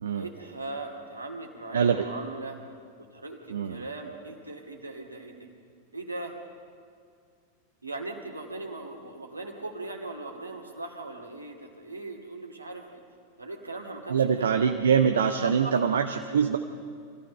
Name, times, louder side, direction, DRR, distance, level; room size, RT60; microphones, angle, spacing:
voice 1, 0.0-2.6 3.1-5.5 5.9-6.4 7.8-13.0 13.4-14.9 15.4-16.1, right 2 dB, 80° right, 1 dB, 2.5 m, -39 dB
voice 2, 1.7-2.0 3.5-3.8 14.1-16.6, right 7 dB, 65° right, 6 dB, 0.8 m, -24 dB
25.5 x 15.5 x 6.7 m, 2.2 s
figure-of-eight pair, 90°, 0 cm